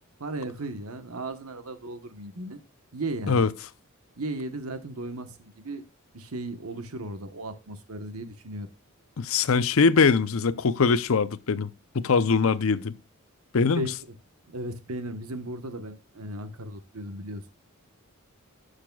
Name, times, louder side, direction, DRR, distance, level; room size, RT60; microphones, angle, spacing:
voice 1, 0.2-2.6 2.9-3.5 4.2-5.8 6.1-8.7 13.7-13.9 14.5-17.5, right 1 dB, 90° right, 1.2 m, -36 dB
voice 2, 9.2-11.7 11.9-12.9 13.5-13.9, left 5 dB, 70° left, 0.6 m, -22 dB
16.5 x 6.5 x 2.3 m
head